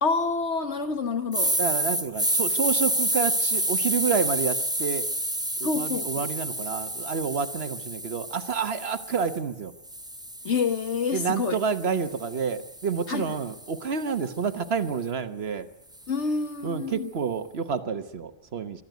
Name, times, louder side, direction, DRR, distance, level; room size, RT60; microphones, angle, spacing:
voice 1, 0.0-1.6 5.6-6.3 10.4-11.6 13.1-13.3 16.1-17.1, left 4 dB, 65° left, 8 dB, 1.7 m, -27 dB
sound 1, 1.3-9.4 9.9-14.1, right 1 dB, 5° right, 0.6 m, -29 dB
voice 2, 1.6-5.1 5.6-9.7 11.1-15.7 16.6-18.8, right 6 dB, 55° right, 10 dB, 1.2 m, -29 dB
22.5 x 13.5 x 9.3 m, 0.88 s
omnidirectional pair, 1.3 m